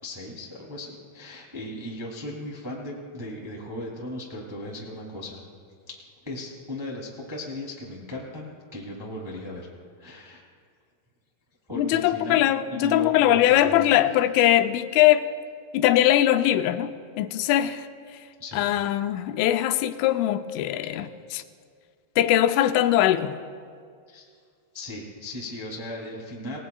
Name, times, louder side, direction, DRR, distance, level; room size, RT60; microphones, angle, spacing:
voice 1, 0.0-5.4 6.2-9.7 10.0-10.4 11.7-12.4 12.7-13.9 18.4-18.6 24.1-24.3 24.7-26.6, left 1 dB, 15° right, -3 dB, 0.9 m, -37 dB
voice 2, 11.7-15.3 15.7-17.9 18.5-21.1 21.3-21.4 22.2-23.3, left 13 dB, 90° left, 9 dB, 3.1 m, -21 dB
28.5 x 18.5 x 2.3 m, 2.1 s
omnidirectional pair, 5.5 m